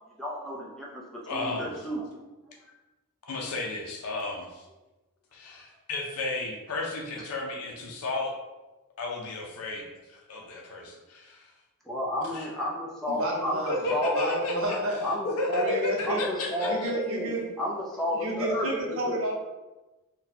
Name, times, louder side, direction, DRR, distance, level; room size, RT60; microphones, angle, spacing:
voice 1, 0.2-1.0 1.3-2.1 11.9-14.2 15.0-15.8 16.1-19.2, left 1 dB, ahead, -5 dB, 0.5 m, -31 dB
voice 2, 1.3-1.9 3.3-4.7 5.3-8.3 9.0-11.4 12.3-12.5 13.1-13.2 13.7-14.8 15.2-16.9, left 2 dB, 85° left, -1 dB, 0.5 m, -33 dB
voice 3, 13.2-13.8 14.1-15.1 15.5-16.2 16.6-17.4 18.1-19.3, right 1 dB, 65° right, -1 dB, 0.7 m, -30 dB
2.7 x 2.2 x 4.0 m, 1.1 s
head